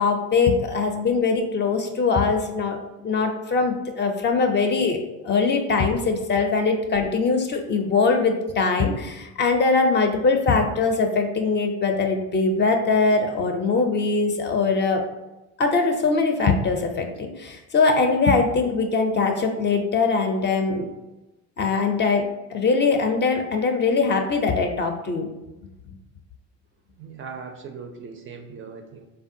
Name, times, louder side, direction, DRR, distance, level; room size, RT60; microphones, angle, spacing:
voice 1, 0.0-5.0 5.2-15.0 15.6-20.9 21.6-25.3, left 4 dB, 35° left, 4 dB, 0.5 m, -22 dB
voice 2, 27.0-29.1, right 5 dB, 40° right, 5 dB, 0.4 m, -39 dB
3.4 x 2.2 x 2.6 m, 1.0 s
supercardioid pair, 80°, 33 cm